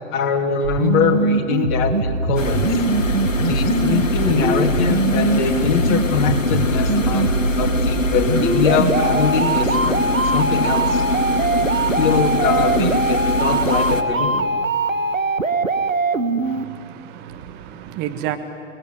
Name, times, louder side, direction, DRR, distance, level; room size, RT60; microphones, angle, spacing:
voice 1, 0.1-2.8 3.4-11.0 11.6-14.5, left 6 dB, 40° left, 3.2 m, -22 dB
sound 1, 0.6-16.6, right 3 dB, 80° right, 1.4 m, -22 dB
sound 2, 2.4-14.0, left 2 dB, 75° left, 2.0 m, -23 dB
voice 2, 16.4-18.4, right 12 dB, 25° right, 1.4 m, -31 dB
29.0 x 20.5 x 9.6 m
figure-of-eight pair, 110°, 39 cm